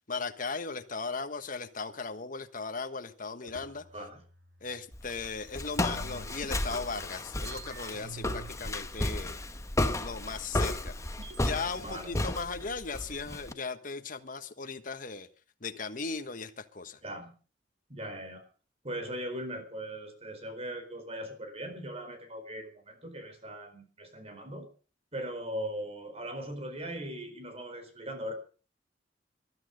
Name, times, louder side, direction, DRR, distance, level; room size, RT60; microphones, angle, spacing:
voice 1, 0.1-3.8 4.6-9.4 10.0-11.0 11.4-15.3 15.6-17.0, left 4 dB, 45° left, 8 dB, 1.4 m, -37 dB
sound 1, 3.4-5.4 5.7-11.5, right 3 dB, 65° right, 2.1 m, -50 dB
Walk footsteps, 4.9-13.5, left 1 dB, 15° left, 1.1 m, -33 dB
voice 2, 11.8-12.2 17.0-17.3 17.9-18.4 18.8-24.7 25.1-28.3, equal, 35° right, 8 dB, 4.3 m, -39 dB
20.0 x 12.0 x 5.2 m, 0.38 s
head